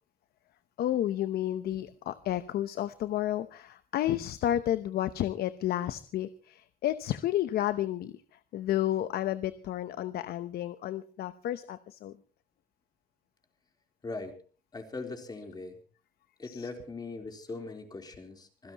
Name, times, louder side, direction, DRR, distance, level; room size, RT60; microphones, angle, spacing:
voice 1, 0.8-8.1 8.5-12.1 16.5-16.6, left 12 dB, 65° left, 13 dB, 0.9 m, -31 dB
voice 2, 14.0-14.4 14.7-15.8 16.4-18.7, left 3 dB, 25° left, 4 dB, 3.8 m, -40 dB
26.0 x 16.0 x 3.0 m, 0.38 s
cardioid pair, 110°, 17 cm